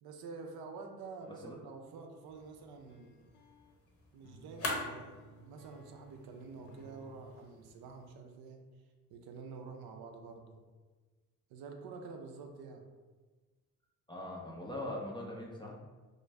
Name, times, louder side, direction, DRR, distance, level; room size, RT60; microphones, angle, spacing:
voice 1, 0.0-3.2 4.1-8.6 9.1-10.6 11.5-12.8, right 4 dB, 55° right, 3 dB, 0.5 m, -48 dB
sound 1, 1.2-7.3, right 1 dB, 65° left, 0.6 m, -59 dB
sound 2, 2.2-8.2, left 2 dB, 30° left, 0.8 m, -45 dB
voice 2, 14.1-15.7, left 1 dB, 10° left, -3 dB, 0.4 m, -41 dB
2.4 x 2.2 x 3.2 m, 1.3 s
hypercardioid pair, 45°, 45 cm